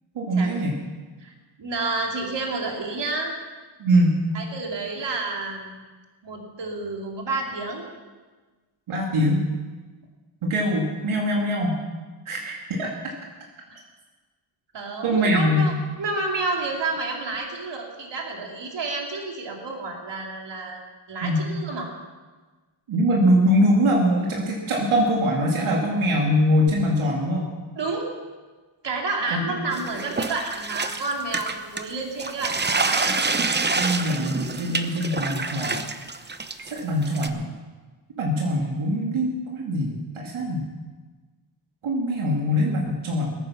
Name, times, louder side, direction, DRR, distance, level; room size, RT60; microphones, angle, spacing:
voice 1, 0.2-0.8 3.8-4.2 8.9-9.4 10.4-11.8 12.3-12.9 15.0-15.7 21.2-21.5 22.9-27.5 29.3-29.4 33.8-35.8 36.7-37.4 38.2-40.7 41.8-43.4, equal, 75° right, -2 dB, 2.5 m, -22 dB
voice 2, 1.6-3.3 4.3-5.8 6.2-7.8 14.7-15.7 16.0-21.9 27.8-28.1 28.8-33.1, right 3 dB, 60° right, 0 dB, 2.8 m, -30 dB
sound 1, 29.7-31.9 32.2-37.3, right 3 dB, 20° right, 0.8 m, -27 dB
21.0 x 9.1 x 5.9 m, 1.3 s
wide cardioid pair, 110°, 49 cm